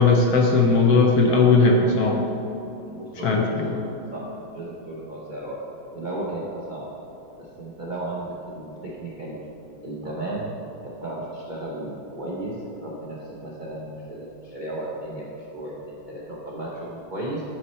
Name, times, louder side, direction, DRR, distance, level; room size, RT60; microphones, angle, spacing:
voice 1, 0.0-2.2 3.2-3.8, left 3 dB, 65° left, 1 dB, 1.1 m, -18 dB
voice 2, 2.9-3.8 4.1-5.6 5.9-6.9 7.4-9.4 9.8-10.5 10.8-17.4, right 1 dB, 50° right, -5 dB, 0.5 m, -34 dB
9.0 x 4.3 x 4.2 m, 2.9 s
omnidirectional pair, 2.0 m